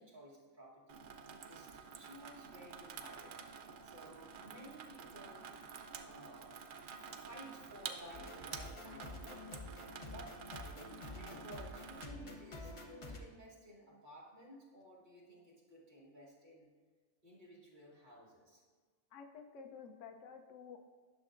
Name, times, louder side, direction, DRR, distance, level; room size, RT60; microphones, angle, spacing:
voice 1, 0.0-3.3 3.8-5.5 6.0-6.5 6.9-16.7 17.2-18.6, equal, 40° right, -5 dB, 1.5 m, -56 dB
Water tap faucet / Sink (filling or washing), 0.9-12.0, right 6 dB, 60° right, 0.5 m, -50 dB
sound 1, 8.1-13.2, left 2 dB, 35° left, 0.6 m, -49 dB
voice 2, 19.1-20.9, left 6 dB, 85° left, 6 dB, 1.0 m, -52 dB
11.0 x 6.3 x 2.5 m, 1.5 s
omnidirectional pair, 1.2 m